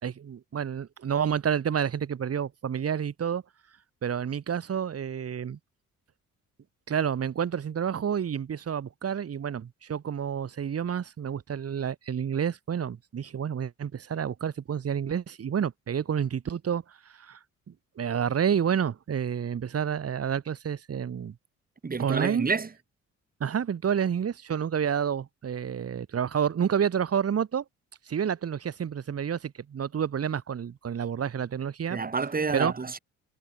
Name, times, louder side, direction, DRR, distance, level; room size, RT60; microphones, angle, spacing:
voice 1, 0.0-3.4 4.0-5.6 6.9-16.8 17.2-17.4 18.0-21.3 22.0-22.5 23.4-27.6 28.1-32.0 32.5-32.7, right 8 dB, 50° right, 4.2 m, -29 dB
voice 2, 21.8-22.7 31.9-33.0, right 4 dB, 30° right, 4.1 m, -29 dB
cardioid pair, 90°, 30 cm